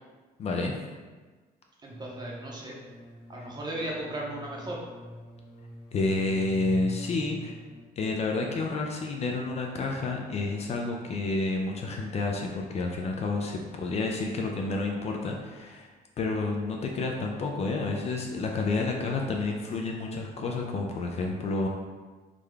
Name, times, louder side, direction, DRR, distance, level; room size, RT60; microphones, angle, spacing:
voice 1, 0.4-0.7 3.3-3.5 5.9-7.6 8.0-21.7, left 3 dB, 40° left, 1 dB, 0.4 m, -30 dB
sound 1, 1.8-7.8, equal, 70° left, 1.0 m, -45 dB
voice 2, 1.8-2.7 3.3-4.8, right 1 dB, 25° right, -3 dB, 0.7 m, -36 dB
3.6 x 2.2 x 3.3 m, 1.4 s
cardioid pair, 110°, 17 cm